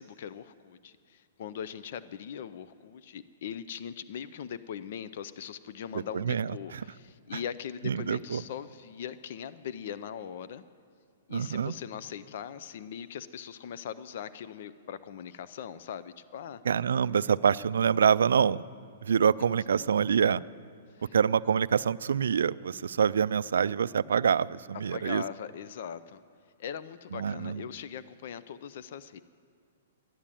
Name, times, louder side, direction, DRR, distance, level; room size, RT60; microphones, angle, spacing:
voice 1, 0.0-10.6 11.3-16.6 20.9-21.2 24.9-26.2 26.6-29.2, left 8 dB, 50° left, 15 dB, 0.5 m, -40 dB
voice 2, 6.1-6.8 7.8-8.4 11.3-11.7 16.7-18.6 19.0-20.4 21.1-25.2 27.1-27.6, right 7 dB, 90° right, 17 dB, 0.3 m, -26 dB
12.5 x 10.0 x 9.0 m, 2.2 s
hypercardioid pair, 165°, 0 cm